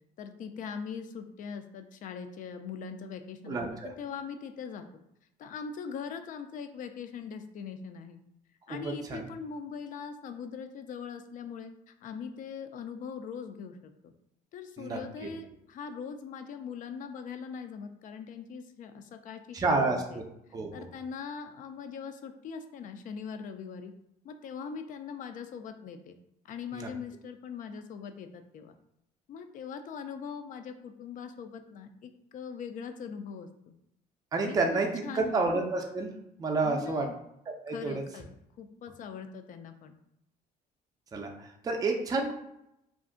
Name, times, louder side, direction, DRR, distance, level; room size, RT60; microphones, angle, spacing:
voice 1, 0.2-4.8 5.4-8.2 8.7-13.8 14.0-14.1 14.5-20.2 20.7-23.9 24.2-26.1 26.4-28.8 29.3-33.7 34.4-35.5 36.6-37.2 37.7-38.3 38.6-40.0, left 6 dB, 50° left, 8 dB, 0.4 m, -41 dB
voice 2, 3.5-3.9 8.7-9.2 14.8-15.3 19.5-20.2 20.5-20.7 26.7-26.9 34.3-36.1 36.4-37.0 37.6-38.0 41.1-41.3 41.6-42.3, right 3 dB, 20° right, 2 dB, 0.4 m, -29 dB
2.5 x 2.1 x 3.6 m, 0.81 s
cardioid pair, 110°, 17 cm